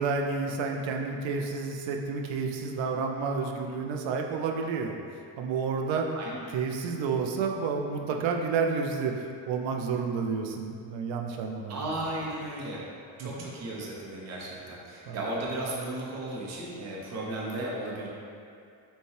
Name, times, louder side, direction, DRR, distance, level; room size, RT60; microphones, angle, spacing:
voice 1, 0.0-5.0 5.4-6.1 6.5-9.1 9.5-11.9 13.2-13.5 15.1-15.2, right 5 dB, 70° right, 2 dB, 0.6 m, -30 dB
voice 2, 6.1-6.5 11.7-12.8 13.2-18.1, right 1 dB, 35° right, -4 dB, 0.7 m, -35 dB
5.3 x 2.3 x 3.2 m, 2.4 s
cardioid pair, 120°, 48 cm